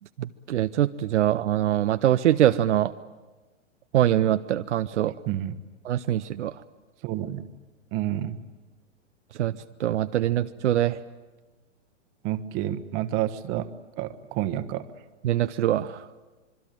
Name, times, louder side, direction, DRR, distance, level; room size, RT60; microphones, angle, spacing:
voice 1, 0.2-2.9 3.9-5.1 5.8-6.5 9.4-9.5 9.8-11.0 15.2-16.0, right 12 dB, 70° right, 10 dB, 0.8 m, -23 dB
voice 2, 5.3-5.6 7.0-7.4 7.9-8.4 12.2-13.7 14.0-14.8, right 13 dB, 35° right, 12 dB, 1.3 m, -29 dB
26.0 x 22.5 x 9.2 m, 1.2 s
hypercardioid pair, 130°, 36 cm